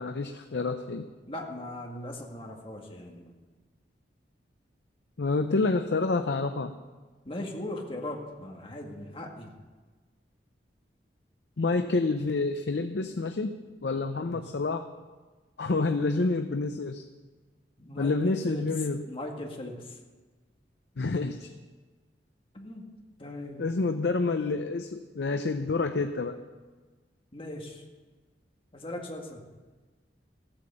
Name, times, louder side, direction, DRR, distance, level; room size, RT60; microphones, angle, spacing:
voice 1, 0.0-1.1 5.2-6.7 11.6-14.9 15.6-17.0 18.0-19.1 21.0-21.5 23.6-26.4, left 3 dB, 70° left, 7 dB, 0.6 m, -28 dB
voice 2, 1.3-3.3 7.3-9.5 14.2-14.4 17.8-18.7 19.1-19.8 22.5-22.9 23.2-23.6 27.3-27.8 28.7-29.5, left 1 dB, 30° left, 1 dB, 1.8 m, -39 dB
14.5 x 8.8 x 6.9 m, 1.3 s
head